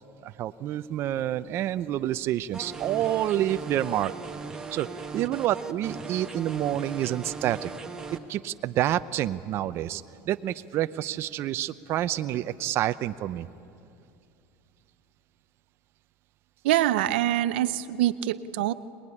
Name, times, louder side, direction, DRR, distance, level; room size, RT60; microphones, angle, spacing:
voice 1, 0.2-4.1 4.7-4.9 5.1-7.7 8.1-13.5, right 13 dB, 45° right, 11 dB, 0.6 m, -28 dB
sound 1, 2.5-8.2, right 4 dB, 10° right, 1.6 m, -38 dB
voice 2, 16.6-18.7, right 13 dB, 85° right, 13 dB, 0.7 m, -24 dB
24.0 x 20.5 x 9.9 m, 2.5 s
supercardioid pair, 130°, 6 cm